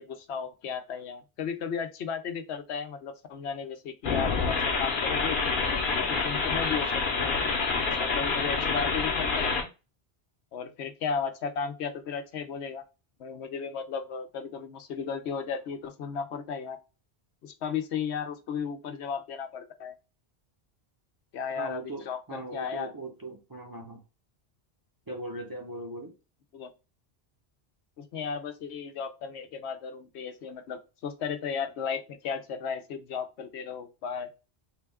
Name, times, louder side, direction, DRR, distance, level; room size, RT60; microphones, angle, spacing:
voice 1, 0.0-5.4 6.0-7.4 7.9-9.7 10.5-12.8 13.2-16.8 17.4-19.9 21.3-22.9 26.5-26.7 28.0-34.3, left 6 dB, 85° left, 0.9 m, -35 dB
sound 1, 4.0-9.6, left 4 dB, 55° left, 0.9 m, -27 dB
voice 2, 21.6-24.0 25.1-26.1, right 1 dB, 25° right, 0.5 m, -39 dB
3.6 x 2.3 x 3.4 m
omnidirectional pair, 1.1 m